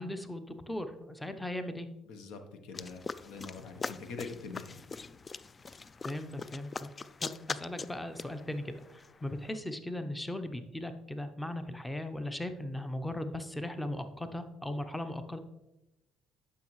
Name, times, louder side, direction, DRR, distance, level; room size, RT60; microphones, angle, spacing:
voice 1, 0.0-1.9 6.0-6.9 7.2-15.4, left 1 dB, 10° left, 9 dB, 0.8 m, -38 dB
voice 2, 2.1-4.8, left 4 dB, 70° left, 7 dB, 1.0 m, -44 dB
sound 1, 2.7-9.5, left 4 dB, 35° left, 0.3 m, -42 dB
10.5 x 5.6 x 3.1 m, 0.96 s
hypercardioid pair, 60°, 0 cm